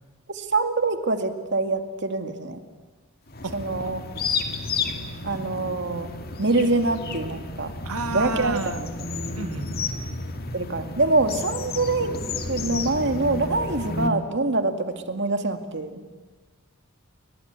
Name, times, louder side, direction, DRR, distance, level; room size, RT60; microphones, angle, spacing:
voice 1, 0.3-2.6 3.5-4.0 5.2-6.1 6.4-7.7 8.1-8.9 10.5-12.2 12.5-16.0, right 2 dB, 55° right, 7 dB, 2.3 m, -25 dB
sound 1, 3.3-14.1, left 3 dB, 45° left, 2.3 m, -32 dB
voice 2, 3.8-4.3 7.9-8.8 9.4-9.9, right 3 dB, 90° right, 10 dB, 1.8 m, -32 dB
29.5 x 24.0 x 8.3 m, 1.3 s
head